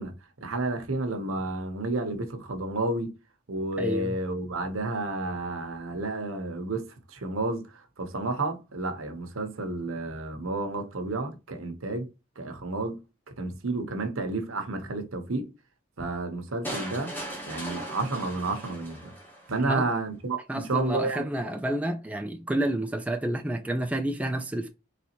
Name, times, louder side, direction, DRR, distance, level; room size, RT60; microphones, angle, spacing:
voice 1, 0.0-3.2 3.5-12.1 12.4-13.0 13.4-15.5 16.0-17.1 17.5-19.1 19.5-21.2, right 2 dB, 80° right, 0.9 m, -31 dB
voice 2, 3.8-4.2 19.6-19.9 20.5-24.7, right 1 dB, 5° right, 0.4 m, -29 dB
sound 1, 16.6-19.6, right 1 dB, 10° left, 1.0 m, -38 dB
4.1 x 3.3 x 2.9 m
head